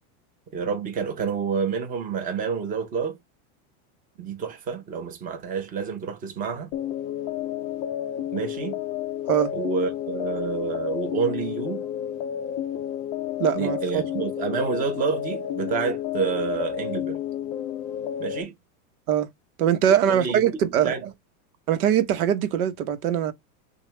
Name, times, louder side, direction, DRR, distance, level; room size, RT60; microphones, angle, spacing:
voice 1, 0.5-3.2 4.2-6.7 8.3-8.8 9.5-11.8 13.5-17.2 18.2-18.5 19.9-20.4 20.8-21.0, right 5 dB, 20° right, 0.9 m, -28 dB
sound 1, 6.7-18.4, left 11 dB, 25° left, 0.4 m, -31 dB
voice 2, 13.4-14.2 19.1-19.3 19.6-20.9 21.7-23.3, right 9 dB, 75° right, 1.1 m, -22 dB
6.5 x 2.4 x 3.3 m
supercardioid pair, 170°, 43 cm